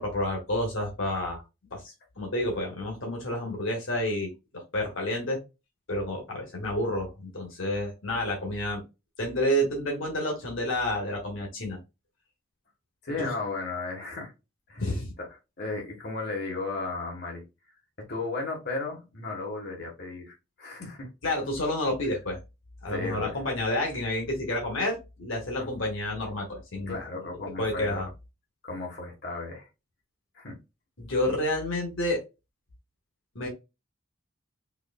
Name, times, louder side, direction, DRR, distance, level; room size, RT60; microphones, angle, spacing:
voice 1, 0.0-1.4 1.7-1.8 2.2-5.4 5.9-8.8 9.2-11.8 13.1-13.3 14.8-15.1 21.2-22.4 22.8-27.0 27.6-28.1 31.0-32.2 33.3-33.5, left 1 dB, 80° left, 1.4 m, -29 dB
voice 2, 13.0-14.3 14.7-14.8 15.2-17.4 18.0-21.1 22.9-23.4 25.6-25.7 26.9-28.1 28.6-29.7 30.3-30.6, left 3 dB, 55° left, 1.3 m, -35 dB
4.7 x 2.6 x 2.3 m
head